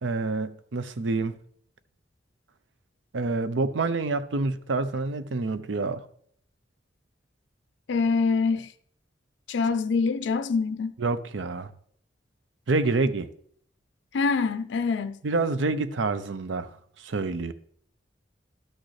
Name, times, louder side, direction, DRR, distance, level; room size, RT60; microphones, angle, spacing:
voice 1, 0.0-1.3 3.1-6.0 11.0-11.7 12.7-13.3 15.2-16.7 17.0-17.5, right 3 dB, 85° right, 0.6 m, -27 dB
voice 2, 7.9-8.7 9.5-10.9 14.1-15.2, left 4 dB, 75° left, 0.4 m, -25 dB
12.0 x 6.4 x 3.2 m
head